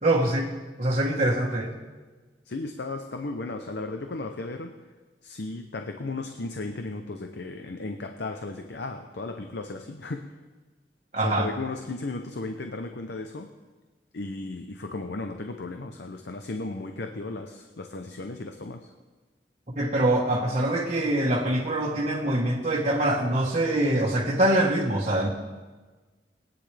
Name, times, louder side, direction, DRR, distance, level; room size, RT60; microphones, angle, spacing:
voice 1, 0.0-0.5 0.8-1.8 11.1-11.5 19.7-25.3, right 1 dB, 40° right, -4 dB, 1.4 m, -24 dB
voice 2, 2.5-4.7 5.2-10.4 11.2-13.5 14.1-18.9, left 2 dB, 70° left, 6 dB, 0.7 m, -35 dB
21.0 x 9.6 x 3.4 m, 1.3 s
head